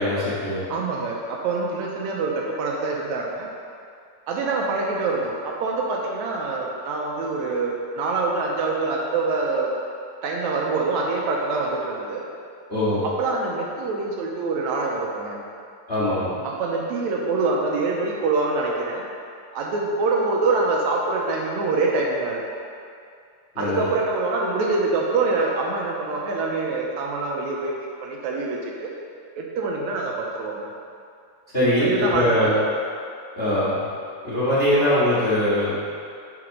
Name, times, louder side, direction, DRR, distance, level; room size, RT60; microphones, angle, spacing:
voice 1, 0.0-0.6 12.7-13.0 15.9-16.3 23.5-23.9 31.5-32.5 33.3-33.8 34.2-35.7, left 1 dB, 25° left, -10 dB, 1.4 m, -22 dB
voice 2, 0.7-3.5 4.3-9.7 10.2-12.2 13.0-15.4 16.4-19.0 19.5-22.4 23.6-27.7 28.0-28.9 29.4-30.7 31.8-32.8, right 3 dB, 75° right, -2 dB, 2.1 m, -25 dB
6.1 x 6.0 x 5.3 m, 2.3 s
omnidirectional pair, 3.4 m